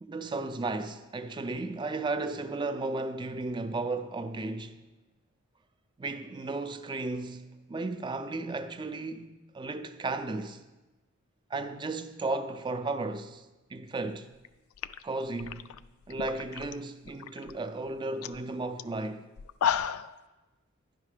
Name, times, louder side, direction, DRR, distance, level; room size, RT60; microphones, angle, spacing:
voice 1, 0.0-4.8 6.0-10.6 11.5-14.3 15.0-15.7 16.1-19.3, right 3 dB, 20° right, 0.3 m, -34 dB
sound 1, 14.3-14.5 14.8-16.7 17.1-17.5 17.9-18.0 18.2-18.4 18.8-18.9 19.4-20.2, left 8 dB, 70° left, 0.3 m, -33 dB
10.5 x 5.6 x 4.9 m
head